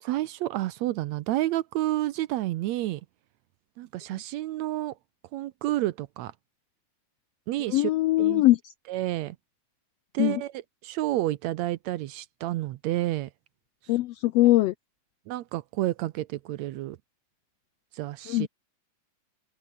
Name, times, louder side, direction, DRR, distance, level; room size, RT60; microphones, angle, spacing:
voice 1, 0.0-3.0 3.8-5.0 5.3-6.3 7.5-7.9 8.2-8.4 8.9-9.4 10.1-13.3 15.3-17.0 17.9-18.5, right 15 dB, 75° right, 1.8 m, -30 dB
voice 2, 7.7-8.7 10.2-10.4 13.9-14.7 18.3-18.5, left 17 dB, 80° left, 1.4 m, -22 dB
open air
omnidirectional pair, 3.5 m